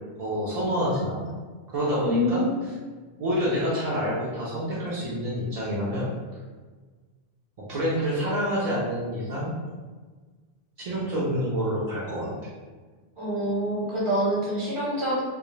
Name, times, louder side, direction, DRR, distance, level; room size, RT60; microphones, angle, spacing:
voice 1, 0.2-1.3 1.7-2.5 3.2-6.1 7.7-9.5 10.8-12.3, equal, 60° right, -7 dB, 0.4 m, -27 dB
voice 2, 2.0-2.6 13.2-15.2, equal, 30° right, -7 dB, 0.8 m, -26 dB
2.3 x 2.1 x 3.0 m, 1.4 s
omnidirectional pair, 1.2 m